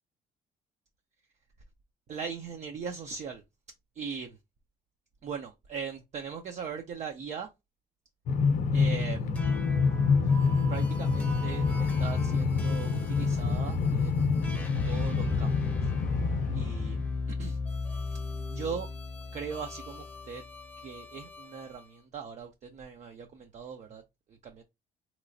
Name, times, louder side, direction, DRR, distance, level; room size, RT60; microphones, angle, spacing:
voice 1, 2.1-3.4 4.0-4.4 5.2-7.5 8.7-9.4 10.7-14.4 14.9-15.9 16.5-17.0 17.3-17.6 18.5-18.9 19.3-20.4 20.8-24.0 24.4-24.6, right 6 dB, 45° right, 0.5 m, -39 dB
Train, 8.3-17.1, left 5 dB, 50° left, 0.6 m, -27 dB
sound 1, 9.3-21.9, left 3 dB, 10° left, 0.8 m, -38 dB
3.2 x 3.0 x 2.6 m
cardioid pair, 110°, 17 cm